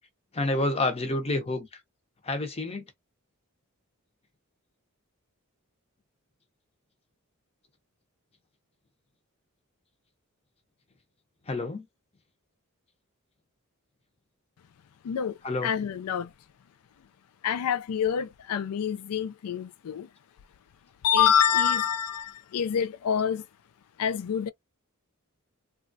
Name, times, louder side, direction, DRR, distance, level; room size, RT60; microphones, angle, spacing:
voice 1, 0.3-1.7 2.2-2.8 11.5-11.8 15.4-15.7, left 2 dB, 30° left, 0.6 m, -28 dB
voice 2, 15.0-16.3 17.4-20.1 21.0-23.4 24.0-24.5, left 8 dB, 85° left, 0.4 m, -26 dB
3.0 x 2.3 x 2.6 m
head